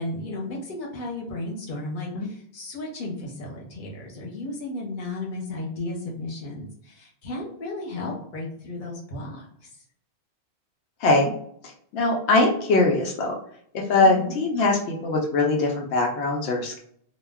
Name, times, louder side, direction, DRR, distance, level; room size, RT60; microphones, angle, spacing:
voice 1, 0.0-9.5 14.0-14.3, left 2 dB, 50° left, -2 dB, 0.9 m, -34 dB
voice 2, 11.0-11.3 11.9-13.4 13.7-16.8, left 2 dB, 85° left, 1 dB, 0.8 m, -21 dB
2.2 x 2.1 x 3.4 m, 0.65 s
omnidirectional pair, 1.1 m